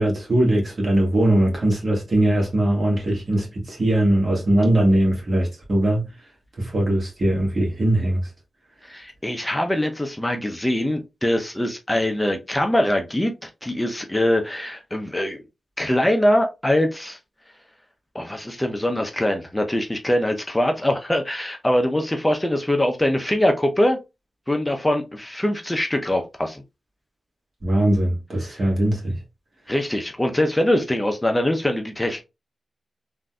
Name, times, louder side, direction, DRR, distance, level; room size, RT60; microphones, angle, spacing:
voice 1, 0.0-6.1 6.6-8.3 27.6-29.2, right 1 dB, 50° right, 1.5 m, -20 dB
voice 2, 8.8-15.4 15.8-17.2 18.1-24.0 24.5-26.6 29.7-32.2, left 1 dB, 10° left, 0.6 m, -23 dB
3.8 x 2.6 x 2.2 m
wide cardioid pair, 80°, 0 cm